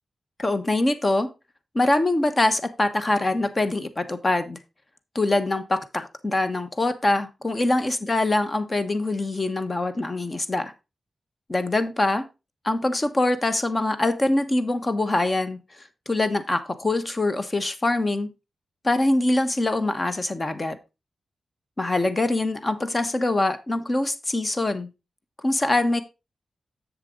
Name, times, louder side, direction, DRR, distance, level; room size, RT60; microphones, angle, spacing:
voice 1, 0.4-1.3 1.7-4.6 5.1-10.7 11.5-12.3 12.6-15.6 16.1-18.3 18.8-20.8 21.8-24.9 25.4-26.0, left 2 dB, 30° left, 1.1 m, -24 dB
7.5 x 7.4 x 3.7 m
wide cardioid pair, 105°, 0 cm